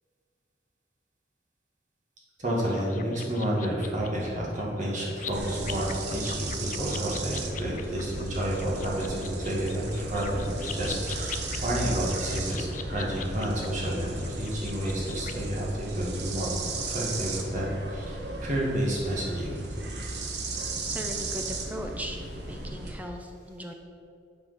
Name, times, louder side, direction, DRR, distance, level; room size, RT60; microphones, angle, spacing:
voice 1, 2.4-16.5 16.8-19.6, right 1 dB, 45° right, -4 dB, 2.1 m, -30 dB
sound 1, 2.6-15.3, left 7 dB, 45° left, 0.5 m, -43 dB
sound 2, 5.3-22.9, right 2 dB, 65° right, 1.1 m, -35 dB
voice 2, 20.8-22.2 22.5-23.7, equal, 10° right, 3 dB, 0.8 m, -38 dB
8.4 x 5.3 x 5.8 m, 2.4 s
head